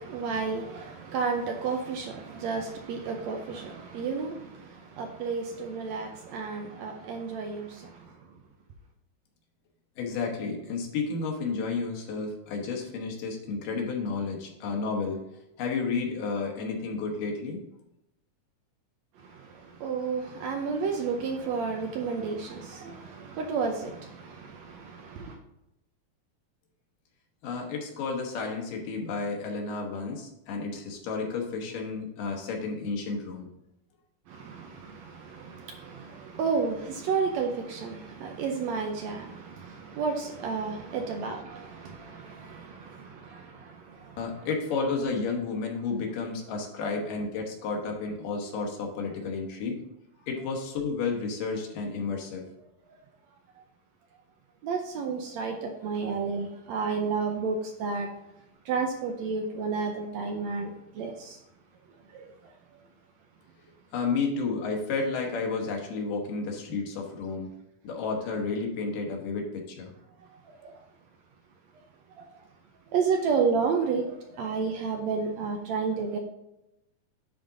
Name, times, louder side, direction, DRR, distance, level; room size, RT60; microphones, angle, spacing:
voice 1, 0.0-8.1 19.3-25.4 34.3-44.2 54.6-58.1 58.6-61.4 62.1-62.3 70.5-70.7 72.1-72.3 72.9-76.2, right 5 dB, 75° right, 3 dB, 1.7 m, -31 dB
voice 2, 10.0-15.2 15.6-17.6 27.4-33.5 44.2-49.8 50.3-52.4 63.9-67.5 67.8-69.9, left 4 dB, 85° left, 1 dB, 2.9 m, -31 dB
10.0 x 4.0 x 3.8 m, 0.86 s
omnidirectional pair, 3.7 m